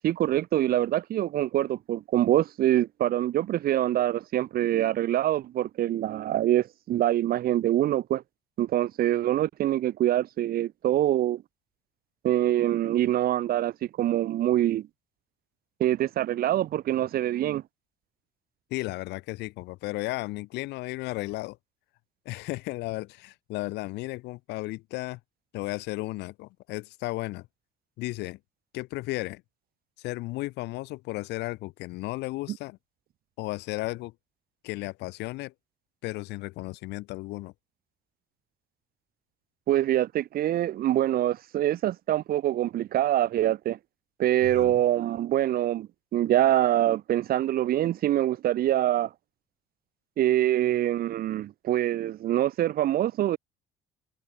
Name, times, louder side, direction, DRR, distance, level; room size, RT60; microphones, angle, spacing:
voice 1, 0.0-8.2 8.6-11.4 12.2-14.9 15.8-17.6 39.7-43.8 44.2-49.1 50.2-53.4, right 13 dB, 60° right, 1.1 m, -25 dB
voice 2, 18.7-21.6 22.3-25.2 25.5-27.5 28.0-28.4 28.7-29.4 30.0-32.8 33.4-34.1 34.6-35.5 36.0-37.5 44.4-44.7, left 20 dB, 90° left, 2.1 m, -34 dB
cardioid pair, 110°, 17 cm